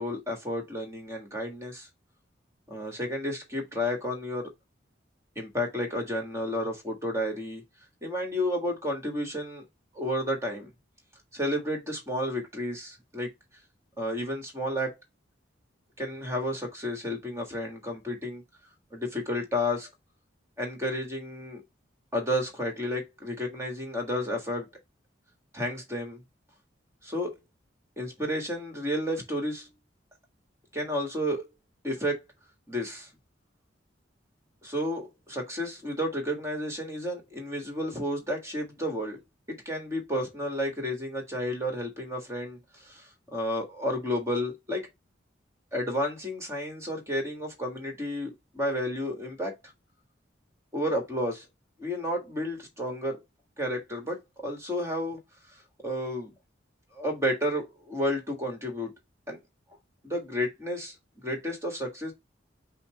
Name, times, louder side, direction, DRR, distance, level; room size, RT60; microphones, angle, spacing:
voice 1, 0.0-1.9 2.7-4.5 5.3-7.6 8.0-9.6 9.9-10.7 11.3-13.3 14.0-15.0 16.0-18.4 18.9-19.9 20.6-21.6 22.1-24.7 25.5-26.2 27.0-27.4 28.0-29.7 30.7-31.4 31.8-32.2 32.7-33.1 34.6-39.2 39.5-44.9 45.7-49.5 50.7-51.4 51.8-53.2 53.6-55.2 55.8-56.3 56.9-58.9 59.3-59.4 60.0-60.9 61.2-62.1, equal, 15° right, 1.4 m, -31 dB
5.5 x 2.1 x 4.5 m
head